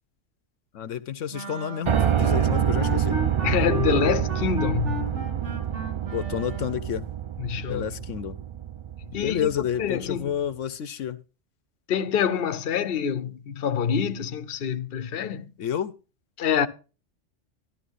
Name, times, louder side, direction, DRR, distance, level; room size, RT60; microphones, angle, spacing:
voice 1, 0.7-3.2 6.1-7.0 7.7-8.4 9.1-11.2 15.6-15.9, left 9 dB, 80° left, 1.1 m, -30 dB
sound 1, 1.3-7.0, right 3 dB, 65° right, 2.6 m, -35 dB
Piano, 1.9-9.9, right 9 dB, 45° right, 0.4 m, -27 dB
voice 2, 3.4-5.1 7.4-7.9 9.1-9.5 9.8-10.3 11.9-15.5 16.4-16.7, left 8 dB, 55° left, 1.0 m, -26 dB
13.0 x 12.5 x 2.5 m
omnidirectional pair, 1.3 m